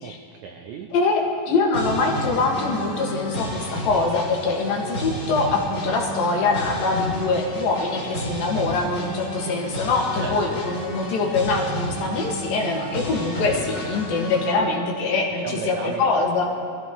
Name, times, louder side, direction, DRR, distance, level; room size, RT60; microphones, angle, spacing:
voice 1, 0.0-0.9 10.2-10.6 15.0-16.1, right 6 dB, 80° right, 3 dB, 1.6 m, -35 dB
voice 2, 0.9-16.4, left 3 dB, 75° left, -1 dB, 3.5 m, -23 dB
sound 1, 1.7-14.5, equal, 30° left, 2.9 m, -32 dB
21.5 x 15.0 x 3.1 m, 2.6 s
omnidirectional pair, 4.2 m